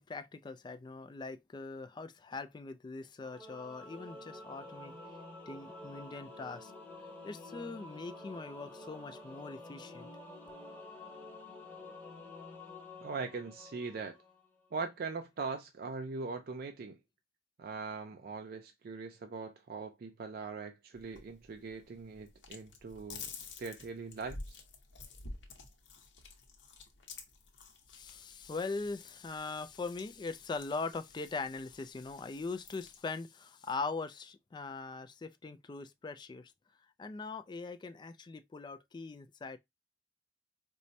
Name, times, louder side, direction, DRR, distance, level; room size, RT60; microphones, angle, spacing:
voice 1, 0.0-4.9 5.5-6.7 7.2-10.1 27.9-36.5 37.0-39.6, left 3 dB, 25° left, 0.3 m, -41 dB
Singing / Musical instrument, 3.2-14.5, left 2 dB, 10° left, 0.8 m, -49 dB
voice 2, 13.0-14.2 14.7-17.0 17.6-23.3 23.6-24.6, right 4 dB, 55° right, 0.4 m, -41 dB
sound 1, 20.9-33.0, left 3 dB, 85° left, 0.8 m, -51 dB
4.4 x 2.0 x 2.6 m
head